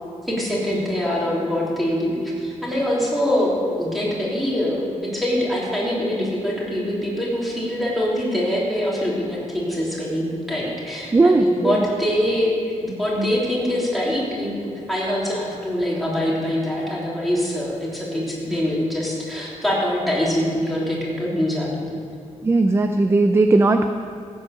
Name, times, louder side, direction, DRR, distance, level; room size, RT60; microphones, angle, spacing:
voice 1, 0.3-12.5 12.8-21.9, equal, ahead, -6 dB, 3.3 m, -24 dB
voice 2, 11.1-11.8 22.4-23.9, right 3 dB, 20° right, 7 dB, 0.5 m, -17 dB
15.0 x 9.0 x 6.6 m, 2.3 s
wide cardioid pair, 155°, 12 cm